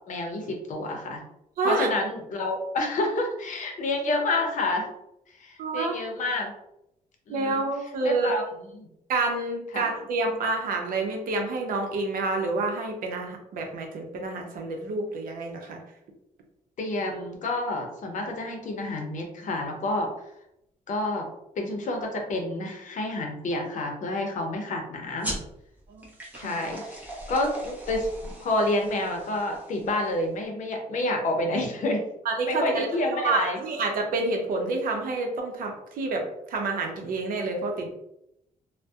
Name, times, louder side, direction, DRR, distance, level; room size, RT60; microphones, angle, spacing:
voice 1, 0.1-1.2 1.6-4.9 5.4-6.5 7.3-7.6 8.0-8.9 9.7-9.9 16.8-20.1 20.9-21.3 21.6-25.4 26.4-32.0 32.5-33.6, left 2 dB, 60° left, 2 dB, 0.7 m, -29 dB
voice 2, 1.6-1.9 5.6-6.0 7.3-8.3 9.1-15.8 25.9-26.1 26.3-26.6 32.2-37.9, right 3 dB, 75° right, 2 dB, 0.6 m, -28 dB
sound 1, 25.2-30.3, right 1 dB, 10° right, 0.8 m, -39 dB
2.6 x 2.1 x 2.3 m, 0.81 s
cardioid pair, 85°, 15 cm